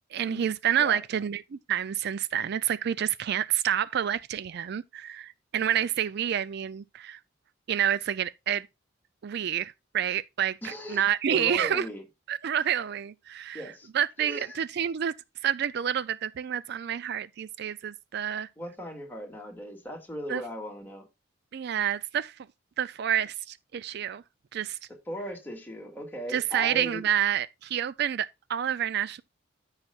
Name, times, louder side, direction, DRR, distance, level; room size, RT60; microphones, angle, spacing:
voice 1, 0.1-7.2 7.7-8.7 9.2-11.9 12.3-13.6 13.9-15.1 15.4-18.5 20.3-20.4 21.5-22.3 22.8-24.2 24.5-24.8 26.3-29.2, right 9 dB, 55° right, 0.4 m, -28 dB
voice 2, 10.6-12.0 13.5-13.9 14.2-14.6 18.6-21.0 25.1-27.0, equal, 10° left, 2.2 m, -38 dB
13.5 x 5.7 x 2.4 m
head